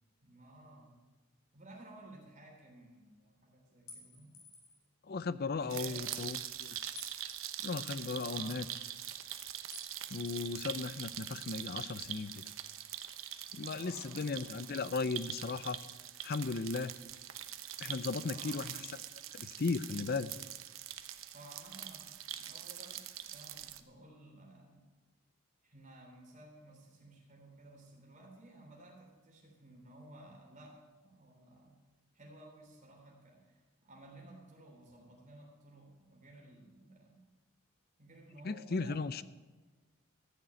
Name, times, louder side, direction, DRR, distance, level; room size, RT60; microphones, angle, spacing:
voice 1, 0.2-1.0 1.5-4.4 5.5-6.4 8.1-8.7 13.5-15.0 18.1-18.7 21.3-23.0 23.3-24.9 25.6-31.8 32.1-37.2 38.0-39.2, right 1 dB, 35° right, 0 dB, 3.6 m, -55 dB
sound 1, 3.9-4.8 7.0-7.9 9.7-9.9 10.3-11.2, left 4 dB, 80° left, 2.9 m, -54 dB
voice 2, 5.1-6.8 7.6-8.7 10.1-12.4 13.5-15.8 16.2-17.0 17.8-18.9 19.3-20.3 38.4-39.2, left 4 dB, 45° left, 15 dB, 0.5 m, -36 dB
sound 2, 5.7-23.8, right 11 dB, 70° right, 0.8 m, -44 dB
14.5 x 6.7 x 9.0 m, 1.3 s
head